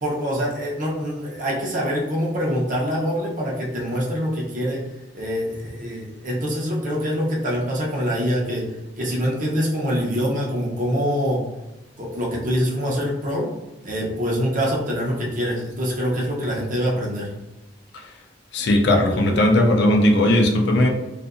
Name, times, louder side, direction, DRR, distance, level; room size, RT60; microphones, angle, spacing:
voice 1, 0.0-4.8 5.1-8.7 9.0-11.4 12.0-13.5 13.8-17.3, equal, 45° right, -3 dB, 0.7 m, -24 dB
voice 2, 18.5-20.9, left 1 dB, 65° left, 3 dB, 0.4 m, -17 dB
2.6 x 2.5 x 2.4 m, 1.0 s
head